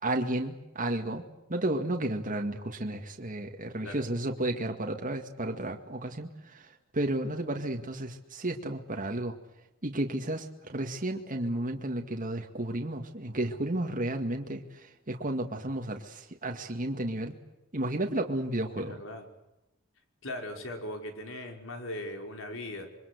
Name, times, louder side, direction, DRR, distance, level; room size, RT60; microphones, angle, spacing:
voice 1, 0.0-1.2 1.5-9.4 9.8-17.3 17.7-19.0, right 1 dB, 40° right, 3 dB, 2.1 m, -32 dB
voice 2, 18.8-19.2 20.2-22.9, left 1 dB, 70° left, 4 dB, 5.1 m, -39 dB
26.5 x 24.5 x 8.2 m, 0.92 s
head